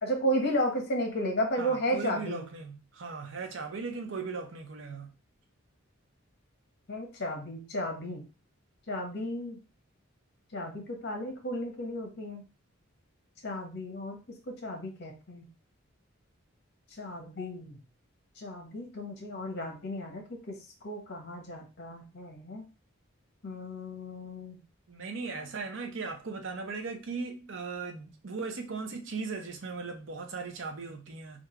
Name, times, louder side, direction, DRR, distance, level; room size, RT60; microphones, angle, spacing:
voice 1, 0.0-2.4 6.9-8.2 8.9-9.6 10.5-12.4 13.4-14.2 14.6-15.5 17.0-17.8 18.4-20.2 20.8-22.6 23.4-24.6, equal, 50° left, 1.2 m, -33 dB
voice 2, 1.6-5.1 24.9-31.4, right 4 dB, 65° right, 0.6 m, -38 dB
3.5 x 2.5 x 4.4 m
head